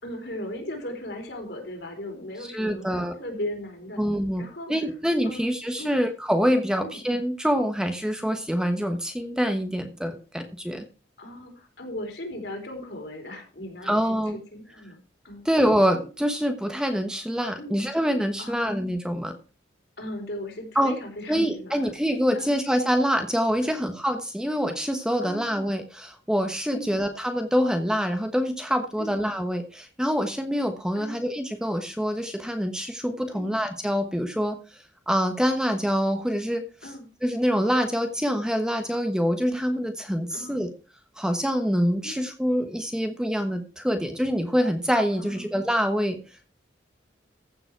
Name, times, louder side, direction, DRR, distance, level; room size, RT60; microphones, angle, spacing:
voice 1, 0.0-4.0 4.4-4.7 5.2-5.5 5.8-6.0 6.8-7.0 11.2-14.2 14.5-15.0 15.2-15.4 17.6-17.8 18.4-18.8 20.0-21.9 22.4-22.5 23.6-23.8 25.2-25.4 26.7-27.0 29.0-29.2 31.0-31.2 33.3-33.5 36.8-37.1 40.3-40.7 42.0-42.2 45.1-45.5, left 1 dB, 65° left, 2 dB, 4.0 m, -37 dB
voice 2, 2.4-3.2 4.0-10.8 13.8-14.4 15.4-19.3 20.7-20.9 21.3-36.6 37.2-40.7 41.2-46.2, equal, 5° right, 6 dB, 1.1 m, -25 dB
15.0 x 7.2 x 4.6 m, 0.34 s
head